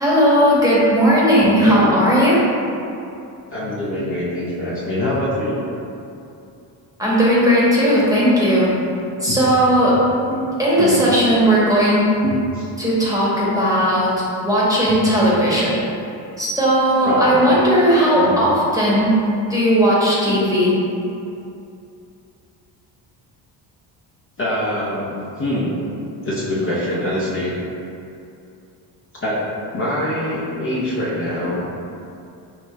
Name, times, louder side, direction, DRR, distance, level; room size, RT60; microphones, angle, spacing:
voice 1, 0.0-2.4 7.0-8.7 9.2-10.0 10.6-12.0 12.8-14.1 14.4-15.8 16.4-19.1 19.5-20.8, equal, 5° right, -8 dB, 1.1 m, -16 dB
voice 2, 1.6-2.0 3.5-5.7 9.3-9.4 10.0-10.4 10.8-11.0 12.2-12.8 17.0-17.5 18.2-18.4 24.4-25.7 26.2-27.5 29.2-29.4 29.7-31.6, left 1 dB, 30° left, -9 dB, 0.7 m, -24 dB
5.7 x 2.1 x 2.3 m, 2.6 s
supercardioid pair, 75°, 47 cm